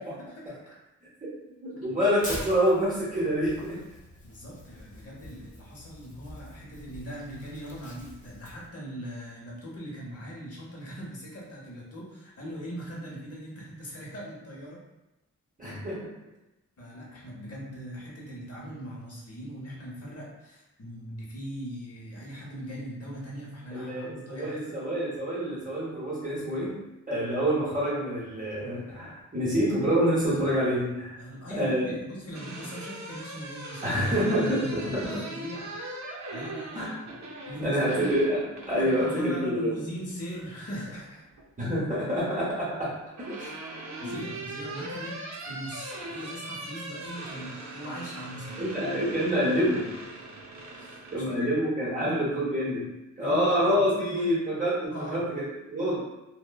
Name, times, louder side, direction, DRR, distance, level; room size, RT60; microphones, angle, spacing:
voice 1, 0.2-0.8 4.2-14.8 16.8-24.8 31.2-34.1 35.0-35.9 36.3-36.8 37.4-38.1 38.8-41.2 43.4-43.5 44.0-45.2 45.4-48.8 50.8-51.5 52.0-52.3 53.2-54.4 54.8-55.2, equal, 55° left, -4 dB, 0.8 m, -40 dB
voice 2, 1.6-3.8 15.6-16.1 23.7-26.8 27.1-31.2 31.6-31.9 33.8-35.1 36.8-36.9 37.6-39.7 41.6-43.0 44.0-44.2 48.6-49.9 51.1-56.0, equal, 25° right, -8 dB, 0.7 m, -27 dB
Tearing, 2.2-8.7, left 1 dB, 25° left, 0.5 m, -44 dB
sound 1, 32.1-39.3 40.8-41.5 42.7-51.2, right 2 dB, 65° right, 0.6 m, -40 dB
2.9 x 2.1 x 2.2 m, 0.95 s
wide cardioid pair, 130°, 30 cm